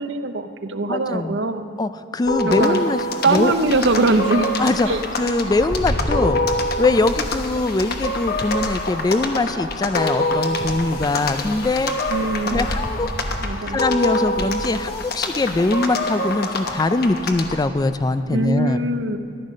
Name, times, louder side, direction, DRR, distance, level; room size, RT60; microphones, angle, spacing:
voice 1, 0.0-1.7 2.4-2.8 3.2-4.5 4.9-5.0 12.1-12.7 13.4-13.8 18.3-19.2, right 2 dB, 70° right, 9 dB, 0.7 m, -21 dB
voice 2, 0.9-1.4 1.8-3.0 3.3-3.5 4.6-4.9 5.2-6.4 6.8-11.9 12.4-13.1 13.7-18.8, left 2 dB, 20° left, 11 dB, 0.4 m, -22 dB
sound 1, 2.2-2.5 3.2-15.7 16.0-16.3 16.5-18.2, equal, 75° left, 2.1 m, -33 dB
sound 2, 2.3-17.6, left 2 dB, 60° left, 1.1 m, -26 dB
14.0 x 11.0 x 6.4 m, 2.5 s
head